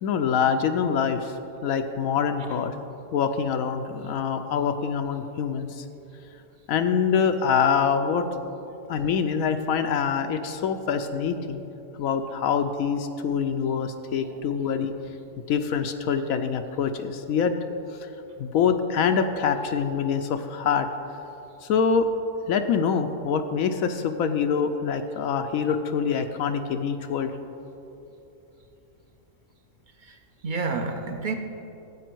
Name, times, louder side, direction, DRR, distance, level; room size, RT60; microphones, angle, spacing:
voice 1, 0.0-1.3 1.6-2.7 3.1-5.8 6.7-8.2 8.9-11.6 12.0-14.9 15.5-17.5 18.4-20.9 21.6-22.1 22.5-27.3, left 6 dB, 85° left, 6 dB, 1.0 m, -25 dB
voice 2, 30.0-31.3, right 4 dB, 45° right, 6 dB, 0.8 m, -31 dB
13.5 x 8.4 x 4.6 m, 3.0 s
omnidirectional pair, 1.4 m